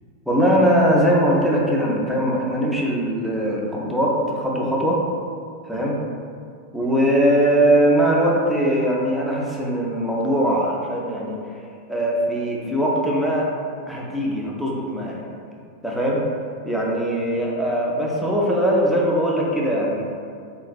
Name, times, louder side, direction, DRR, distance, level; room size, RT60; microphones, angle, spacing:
voice 1, 0.3-5.0 5.7-6.0 6.7-11.4 11.9-13.4 13.9-15.2 15.8-16.2 16.7-20.0, equal, ahead, -4 dB, 0.5 m, -21 dB
2.9 x 2.5 x 2.3 m, 2.3 s
figure-of-eight pair, 90°, 0 cm